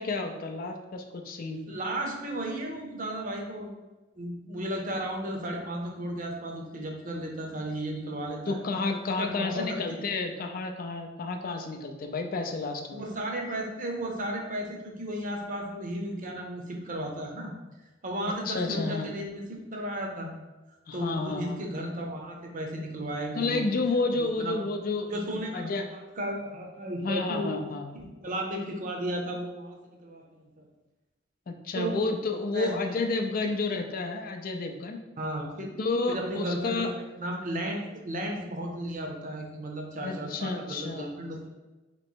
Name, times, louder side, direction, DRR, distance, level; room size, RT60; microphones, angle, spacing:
voice 1, 0.0-1.6 8.5-13.0 18.5-19.1 20.9-21.7 23.4-25.9 27.0-27.9 31.5-35.0 35.8-36.9 40.0-41.1, left 3 dB, 50° left, 5 dB, 0.4 m, -31 dB
voice 2, 1.7-3.7 4.1-8.6 9.2-10.0 12.9-17.5 18.0-20.3 20.9-23.7 24.1-24.6 25.1-27.6 27.9-30.7 31.7-32.0 32.5-32.7 33.4-33.5 35.2-35.7 36.1-41.5, right 1 dB, 45° right, 1 dB, 0.7 m, -34 dB
3.1 x 3.0 x 4.4 m, 1.1 s
head